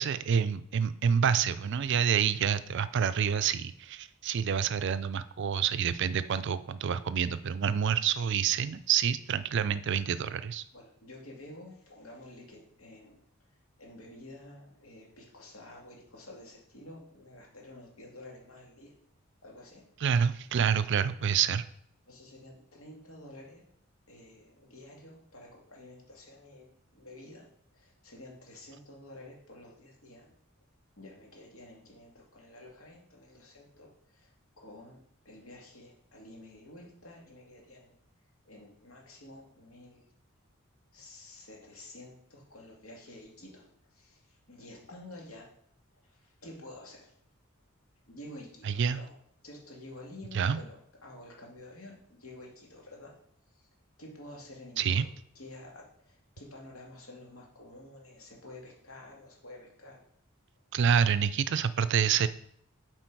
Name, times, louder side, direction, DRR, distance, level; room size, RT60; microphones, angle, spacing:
voice 1, 0.0-10.6 20.0-21.6 48.6-49.0 50.3-50.6 54.8-55.1 60.7-62.3, right 7 dB, 60° right, 14 dB, 0.4 m, -27 dB
voice 2, 10.7-13.2 13.8-18.9 19.4-19.8 22.1-23.6 24.1-27.5 27.7-30.3 31.0-37.9 38.5-40.0 40.9-45.5 46.0-47.1 48.1-49.2 49.4-53.1 53.5-53.7 54.0-55.1 55.3-60.0, left 1 dB, 80° left, -1 dB, 2.3 m, -50 dB
7.7 x 4.5 x 4.6 m, 0.68 s
head